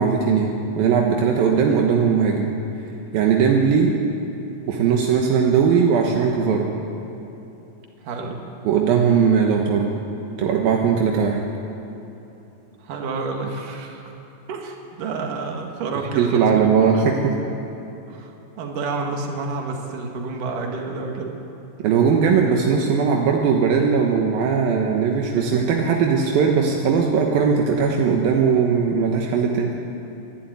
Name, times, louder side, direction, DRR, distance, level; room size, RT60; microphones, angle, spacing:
voice 1, 0.0-2.5 3.1-3.9 4.7-6.7 8.7-9.9 10.4-11.4 16.2-17.1 21.8-29.7, right 6 dB, 80° right, 1 dB, 3.0 m, -19 dB
voice 2, 8.0-8.4 12.8-14.1 14.5-17.1 18.1-21.3, right 4 dB, 65° right, 2 dB, 3.4 m, -29 dB
24.5 x 11.5 x 9.4 m, 3.0 s
omnidirectional pair, 4.2 m